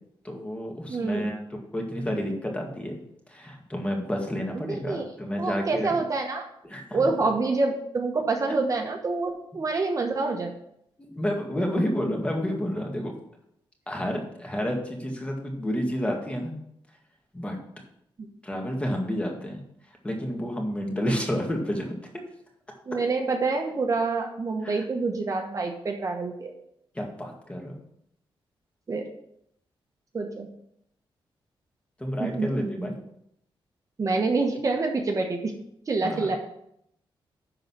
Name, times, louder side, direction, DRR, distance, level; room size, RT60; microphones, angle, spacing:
voice 1, 0.2-1.4 1.7-3.0 3.3-5.9 6.6-7.1 11.0-13.1 13.9-16.5 17.3-17.6 18.4-19.6 20.0-22.0 24.6-24.8 27.0-27.7 32.0-32.9 36.0-36.4, equal, 15° left, 1 dB, 1.9 m, -30 dB
voice 2, 0.9-1.3 4.5-5.0 5.4-6.4 6.9-10.5 20.9-21.0 22.9-26.5 28.9-29.1 30.1-30.5 32.2-32.9 34.0-35.5 35.9-36.4, right 3 dB, 40° right, 3 dB, 1.1 m, -27 dB
11.0 x 3.9 x 6.1 m, 0.74 s
wide cardioid pair, 125°, 9 cm